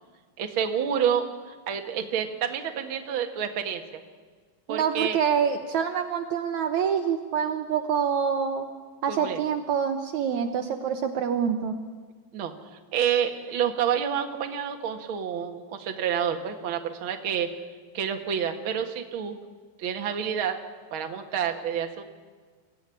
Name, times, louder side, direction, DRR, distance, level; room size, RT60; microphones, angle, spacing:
voice 1, 0.4-3.8 4.7-5.2 9.1-9.4 12.3-17.5 17.9-19.4 19.8-20.6 20.9-22.0, right 8 dB, 55° right, 5 dB, 1.4 m, -28 dB
voice 2, 4.7-8.7 9.0-11.8, right 7 dB, 85° right, 6 dB, 1.6 m, -26 dB
24.5 x 16.0 x 9.9 m, 1.5 s
omnidirectional pair, 4.8 m